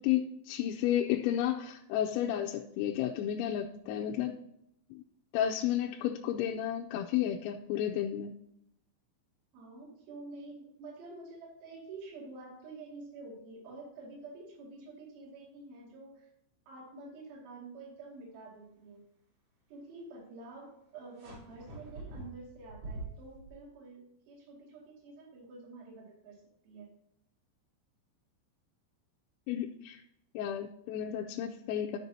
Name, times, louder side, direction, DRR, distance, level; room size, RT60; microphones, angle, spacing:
voice 1, 0.0-4.4 4.9-5.0 5.3-8.3 29.5-30.0 30.3-32.0, left 11 dB, 90° left, 1 dB, 3.3 m, -32 dB
voice 2, 9.5-16.3 16.7-19.0 19.7-26.9, right 3 dB, 55° right, -3 dB, 3.7 m, -48 dB
sound 1, 21.2-23.5, right 1 dB, 35° right, 4.2 m, -45 dB
11.5 x 6.7 x 2.8 m, 0.79 s
omnidirectional pair, 5.9 m